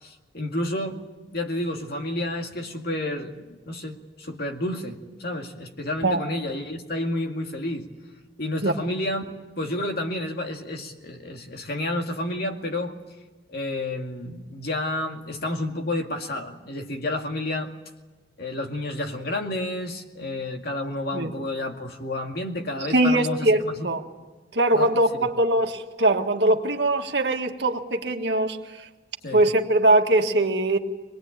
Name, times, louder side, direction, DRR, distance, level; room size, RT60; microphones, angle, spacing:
voice 1, 0.0-1.0 1.3-7.9 8.4-9.2 9.6-13.0 13.5-17.7 18.4-23.9 24.7-25.3 29.2-29.4, left 1 dB, 60° left, 3 dB, 2.2 m, -30 dB
voice 2, 22.9-24.0 24.5-28.6 29.3-30.8, right 1 dB, 70° right, 4 dB, 1.7 m, -21 dB
24.0 x 19.5 x 8.8 m, 1.3 s
head